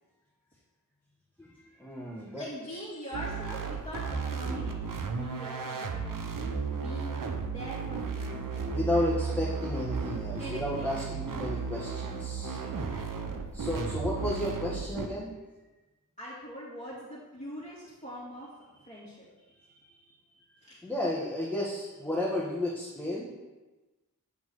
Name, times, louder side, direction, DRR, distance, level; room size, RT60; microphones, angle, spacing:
voice 1, 1.4-2.4 8.6-12.6 13.5-15.3 19.6-20.0 20.3-23.3, left 1 dB, 5° left, -6 dB, 1.6 m, -33 dB
voice 2, 2.4-9.1 10.4-11.0 12.6-13.3 16.2-18.5 18.8-19.3 20.6-20.8, equal, 20° left, -8 dB, 2.4 m, -43 dB
sound 1, 3.1-15.1, right 5 dB, 70° right, 0.8 m, -34 dB
8.4 x 4.5 x 5.6 m, 1.2 s
wide cardioid pair, 65°, 34 cm